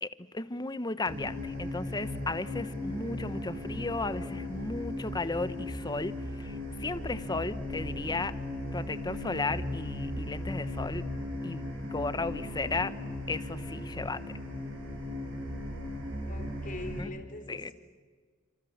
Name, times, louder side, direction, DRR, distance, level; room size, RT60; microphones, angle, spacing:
voice 1, 0.0-8.3 8.7-11.0 11.4-12.9 13.3-14.2 17.0-17.1 17.5-17.7, left 3 dB, 20° left, 13 dB, 1.0 m, -35 dB
sound 1, 1.1-17.0, left 1 dB, 70° right, 7.2 m, -37 dB
voice 2, 16.3-17.7, left 2 dB, 45° left, 6 dB, 4.2 m, -42 dB
30.0 x 27.0 x 7.3 m, 1.5 s
head